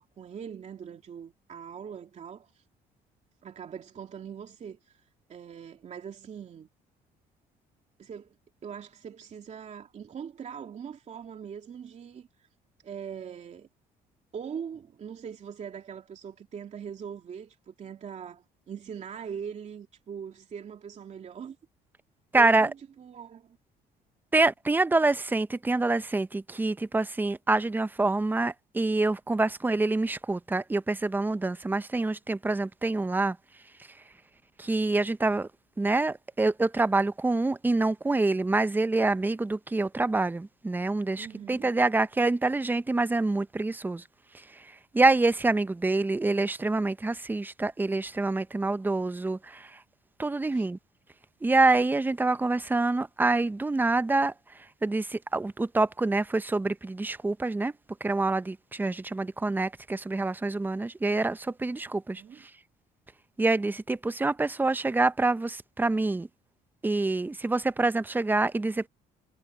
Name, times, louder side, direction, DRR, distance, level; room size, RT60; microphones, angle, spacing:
voice 1, 0.0-2.6 3.4-5.0 5.3-6.7 8.0-8.4 8.6-12.3 12.8-13.7 14.3-21.6 22.3-23.6 41.2-41.7 50.5-50.7 62.1-62.4, right 7 dB, 45° right, 2.7 m, -41 dB
voice 2, 22.3-22.7 24.3-33.4 34.6-35.5 35.8-44.0 44.5-44.7 44.9-49.8 50.2-50.8 51.4-54.3 54.8-57.7 58.0-62.5 63.4-66.3 66.8-68.9, right 2 dB, 10° right, 0.7 m, -26 dB
cardioid pair, 110°, 17 cm